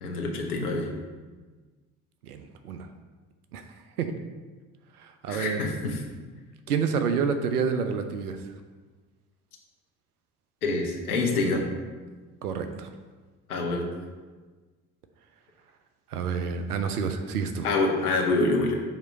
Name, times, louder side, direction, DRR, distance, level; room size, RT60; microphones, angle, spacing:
voice 1, 0.0-0.9 5.3-6.0 10.6-11.7 13.5-13.9 17.6-18.8, left 3 dB, 80° left, 1 dB, 1.0 m, -26 dB
voice 2, 2.2-2.9 3.5-3.6 4.0-4.1 5.0-5.7 6.7-8.4 12.4-12.9 16.1-17.7, right 6 dB, 85° right, 8 dB, 0.6 m, -28 dB
7.2 x 2.9 x 4.7 m, 1.4 s
figure-of-eight pair, 55°, 44 cm